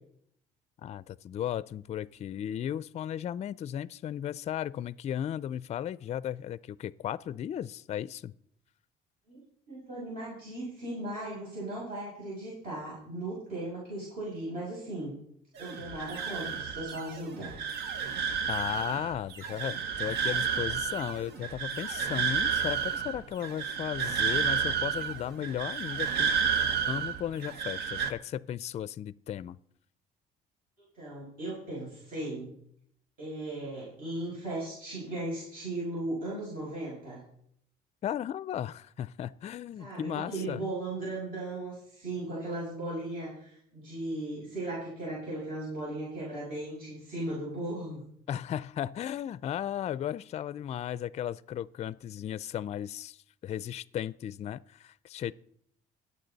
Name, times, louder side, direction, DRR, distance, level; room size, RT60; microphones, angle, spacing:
voice 1, 0.8-8.3 18.5-26.3 26.9-29.6 38.0-40.6 48.3-55.3, left 10 dB, 40° left, 19 dB, 0.4 m, -35 dB
voice 2, 9.7-15.1 15.6-17.5 30.8-32.5 33.2-37.2 39.8-48.0, right 1 dB, 60° right, -7 dB, 6.6 m, -37 dB
sound 1, 15.6-28.1, right 6 dB, 75° right, 1.1 m, -31 dB
22.0 x 8.3 x 4.0 m, 0.69 s
cardioid pair, 110°, 17 cm